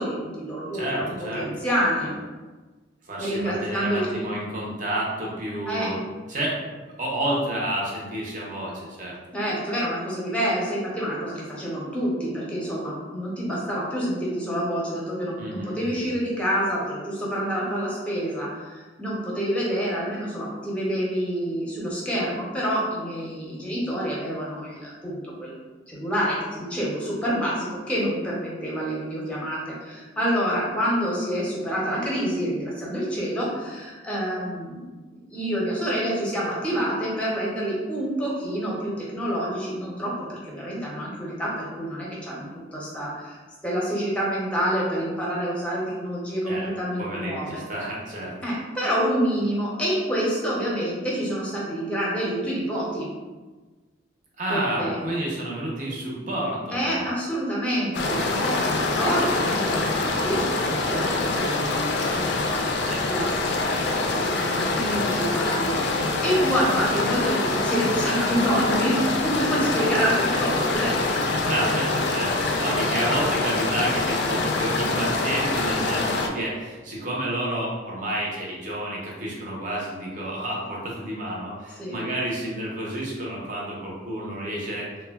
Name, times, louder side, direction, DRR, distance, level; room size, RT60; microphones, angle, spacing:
voice 1, 0.0-2.1 3.2-4.1 5.7-5.9 9.3-25.5 25.9-34.9 35.3-47.6 48.4-53.1 54.5-55.0 56.7-65.7 66.2-71.5 81.8-82.0, equal, 5° left, -5 dB, 0.6 m, -27 dB
voice 2, 0.7-1.4 2.0-2.1 3.1-6.0 6.3-6.6 7.0-9.2 15.4-16.1 46.5-46.7 47.0-48.3 54.4-57.0 62.8-63.1 71.3-84.9, right 1 dB, 45° right, -3 dB, 0.6 m, -30 dB
sound 1, 57.9-76.3, left 3 dB, 60° left, 0.3 m, -25 dB
3.2 x 2.1 x 2.2 m, 1.3 s
head